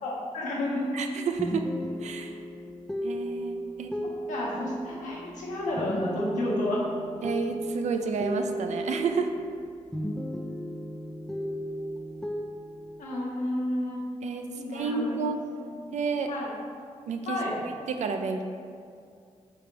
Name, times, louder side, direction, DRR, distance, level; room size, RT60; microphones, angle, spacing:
voice 1, 0.0-0.9 4.0-6.8 13.0-14.0 14.5-15.2 15.5-15.8 16.3-16.5 17.3-17.6, left 1 dB, 80° left, -5 dB, 1.0 m, -31 dB
voice 2, 0.9-1.7 2.0-2.3 3.0-3.9 7.2-9.3 14.2-14.5 14.7-15.4 15.9-16.3 17.1-18.4, right 5 dB, 65° right, 5 dB, 0.4 m, -30 dB
sound 1, 1.4-9.7 9.9-13.0, equal, 5° left, 0.4 m, -35 dB
3.4 x 2.9 x 4.5 m, 2.2 s
cardioid pair, 60°, 13 cm